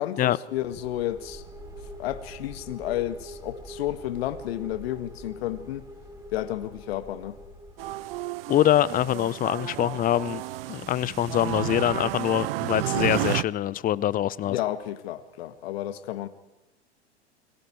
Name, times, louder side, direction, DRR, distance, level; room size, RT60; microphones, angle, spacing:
voice 1, 0.0-1.4 2.0-5.8 6.3-7.4 14.4-16.3, left 13 dB, 60° left, 1.8 m, -31 dB
sound 1, 0.5-8.3, equal, 10° right, 4.2 m, -44 dB
sound 2, 7.8-13.4, right 17 dB, 55° right, 0.7 m, -31 dB
voice 2, 8.5-10.4 10.7-14.6, left 12 dB, 25° left, 0.8 m, -24 dB
29.5 x 23.5 x 4.7 m
hypercardioid pair, 100°, 35 cm